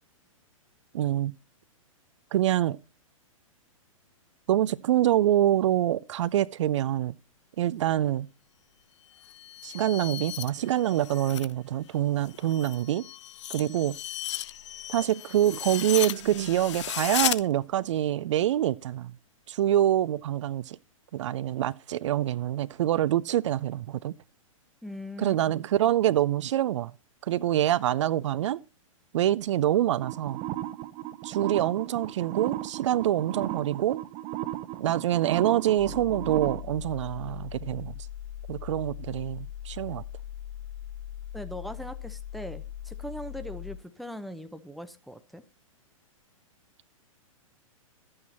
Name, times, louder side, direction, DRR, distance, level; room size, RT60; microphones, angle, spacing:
voice 1, 0.9-1.3 2.3-2.8 4.5-7.2 7.6-8.3 9.6-13.0 13.5-14.0 14.9-19.1 19.5-20.8 21.1-24.1 25.2-26.9 27.2-28.6 29.1-30.4 31.2-34.0 34.8-37.9 38.5-40.0, right 12 dB, 60° right, 0.4 m, -26 dB
sound 1, 9.1-11.5 11.9-17.4, left 13 dB, 55° left, 0.6 m, -35 dB
voice 2, 24.8-25.4 41.3-45.4, equal, ahead, 0.7 m, -40 dB
sound 2, 30.0-36.6, right 14 dB, 35° right, 0.8 m, -36 dB
sound 3, 35.8-43.8, left 11 dB, 30° left, 1.5 m, -40 dB
12.0 x 8.7 x 4.2 m
hypercardioid pair, 115°, 18 cm